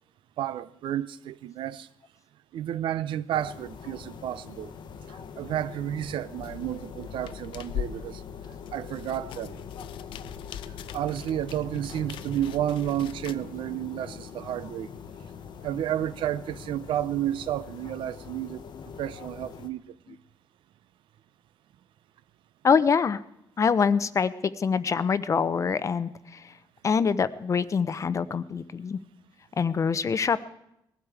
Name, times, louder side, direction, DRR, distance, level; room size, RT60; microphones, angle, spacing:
voice 1, 0.4-1.9 2.5-4.7 5.1-8.2 8.7-9.6 10.9-14.9 15.6-18.6 19.0-19.9, right 11 dB, 80° right, 0.5 m, -31 dB
sound 1, 3.3-19.7, left 6 dB, 65° left, 0.9 m, -43 dB
sound 2, 6.4-13.4, left 10 dB, 85° left, 0.5 m, -41 dB
voice 2, 22.6-23.2 23.6-26.5 26.8-29.0 29.6-30.4, left 6 dB, 40° left, 0.6 m, -25 dB
19.5 x 12.0 x 4.8 m
cardioid pair, 105°, 8 cm